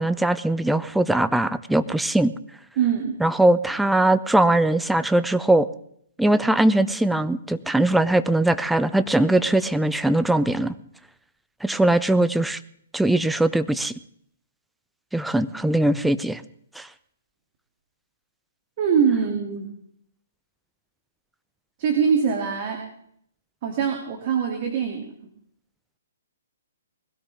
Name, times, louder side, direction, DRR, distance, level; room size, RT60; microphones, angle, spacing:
voice 1, 0.0-2.3 3.2-5.7 6.2-10.7 11.6-12.6 12.9-13.9 15.1-16.4 16.8-16.9, right 1 dB, 5° right, 12 dB, 0.6 m, -20 dB
voice 2, 2.8-3.2 18.8-19.7 21.8-22.8 23.6-25.1, right 7 dB, 40° right, 2 dB, 2.7 m, -23 dB
21.0 x 16.5 x 3.6 m, 0.67 s
figure-of-eight pair, 125°, 0 cm